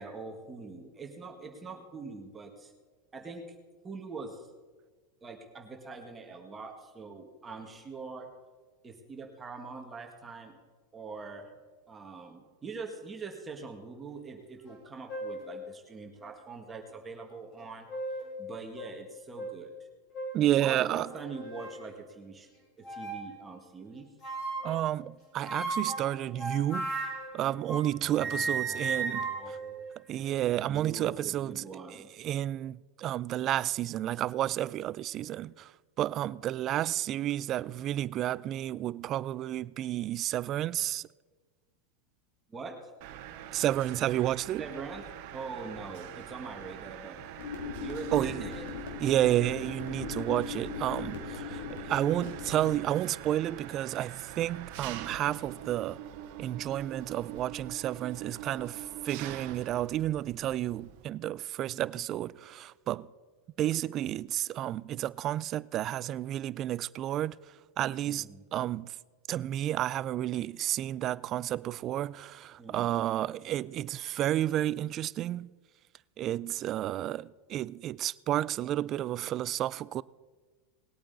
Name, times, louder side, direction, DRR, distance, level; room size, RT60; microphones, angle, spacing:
voice 1, 0.0-2.7 3.1-3.5 3.8-4.5 5.2-8.3 8.8-10.6 10.9-11.5 11.9-17.9 18.4-19.7 20.6-22.5 22.8-24.1 28.0-29.8 30.6-32.1 42.5-42.9 44.6-45.0 45.3-47.2 47.8-48.7 68.0-68.4 72.6-72.9, right 4 dB, 20° right, 1.6 m, -43 dB
sound 1, 14.7-14.8 15.1-15.5 16.2-16.3 17.6-18.3 18.8-18.9 19.4-19.5 20.1-20.4 21.1-21.8 22.8-23.3 24.2-24.8 25.4-27.9 28.2-30.5, right 3 dB, 40° left, 4.7 m, -36 dB
voice 2, 20.3-21.1 24.6-26.9 27.3-29.6 30.1-31.6 31.9-35.7 36.0-41.1 43.5-44.6 48.1-48.5 49.0-56.0 56.4-63.1 63.6-68.3 68.5-69.0 69.3-75.5 76.2-80.0, right 13 dB, 40° right, 0.3 m, -31 dB
Mechanisms, 43.0-61.0, right 11 dB, 60° right, 1.1 m, -45 dB
sound 2, 47.4-52.8, left 6 dB, 75° left, 2.8 m, -39 dB
19.5 x 8.6 x 4.0 m
supercardioid pair, 130°, 0 cm